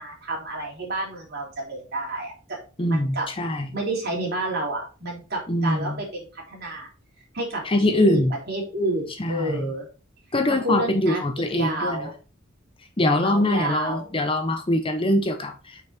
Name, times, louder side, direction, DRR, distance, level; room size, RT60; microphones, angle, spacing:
voice 1, 0.0-3.3 3.7-6.9 7.3-7.6 7.9-9.9 10.5-11.2 11.5-12.1 13.1-14.1, right 1 dB, 55° right, -2 dB, 3.6 m, -30 dB
voice 2, 2.8-3.7 5.5-6.0 7.6-8.3 9.2-9.7 10.3-12.1 13.0-15.8, left 1 dB, 25° left, 6 dB, 0.9 m, -23 dB
6.2 x 5.8 x 4.4 m, 0.33 s
head